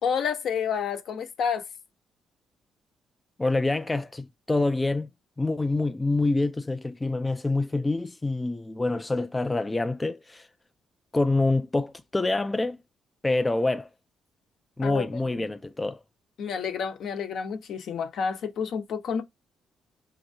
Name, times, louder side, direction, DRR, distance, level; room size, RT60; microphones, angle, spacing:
voice 1, 0.0-1.7 14.8-15.1 16.4-19.2, left 6 dB, 70° left, 0.8 m, -29 dB
voice 2, 3.4-5.1 5.4-10.5 11.1-12.8 13.2-13.9 14.8-16.0, left 2 dB, 15° left, 0.3 m, -26 dB
5.1 x 2.9 x 2.6 m
cardioid pair, 90°, 0 cm